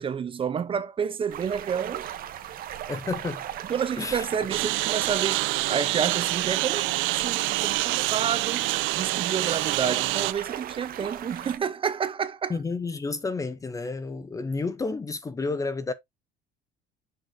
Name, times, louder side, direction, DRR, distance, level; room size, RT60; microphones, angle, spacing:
voice 1, 0.0-2.1 3.7-12.5, right 7 dB, 25° right, 0.6 m, -30 dB
sound 1, 1.3-11.6, right 11 dB, 45° right, 0.9 m, -37 dB
voice 2, 2.9-3.4 4.0-4.3 12.5-15.9, left 3 dB, 15° left, 0.6 m, -31 dB
Engine, 4.5-10.3, right 19 dB, 80° right, 0.5 m, -26 dB
6.5 x 6.1 x 2.6 m
cardioid pair, 170°, 20 cm